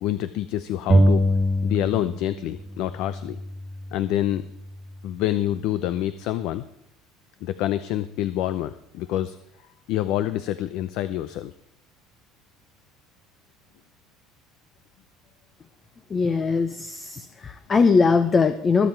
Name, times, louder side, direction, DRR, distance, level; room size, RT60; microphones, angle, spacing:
voice 1, 0.0-1.2 1.6-3.4 3.9-4.5 5.0-6.6 7.4-9.4 9.9-11.5, left 13 dB, 65° left, 13 dB, 0.6 m, -27 dB
sound 1, 0.9-2.4 2.7-4.4, equal, 20° right, 1.7 m, -23 dB
voice 2, 16.1-18.9, left 4 dB, 25° left, 11 dB, 0.7 m, -21 dB
21.5 x 7.5 x 4.6 m, 0.77 s
cardioid pair, 130°, 0 cm